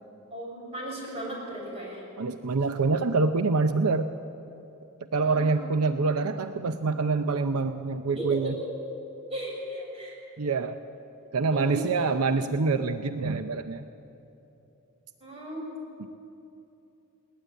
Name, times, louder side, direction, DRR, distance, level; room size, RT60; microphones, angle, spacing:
voice 1, 0.3-2.0 5.1-5.8 8.1-8.7 9.3-10.2 11.5-12.1 15.2-15.8, right 1 dB, 25° right, -3 dB, 6.7 m, -36 dB
voice 2, 2.2-4.1 5.1-8.5 10.4-10.8 11.3-13.8 16.0-16.1, right 4 dB, 80° right, 9 dB, 0.7 m, -26 dB
20.5 x 19.0 x 9.1 m, 2.9 s
head